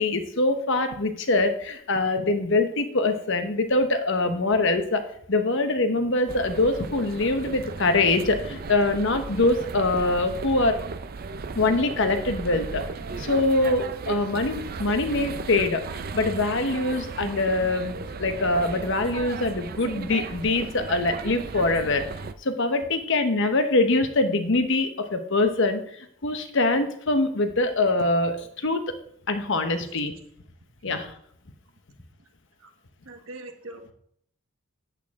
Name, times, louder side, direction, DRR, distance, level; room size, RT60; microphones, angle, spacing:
voice 1, 0.0-10.8 11.5-12.8 13.2-22.0 22.4-28.8 29.3-30.1 30.8-31.1, left 2 dB, 60° left, 8 dB, 0.9 m, -24 dB
sound 1, 6.3-22.3, right 4 dB, 45° right, 0.5 m, -36 dB
voice 2, 33.0-33.9, right 2 dB, 70° right, 4 dB, 1.3 m, -41 dB
8.5 x 8.1 x 3.6 m, 0.67 s
head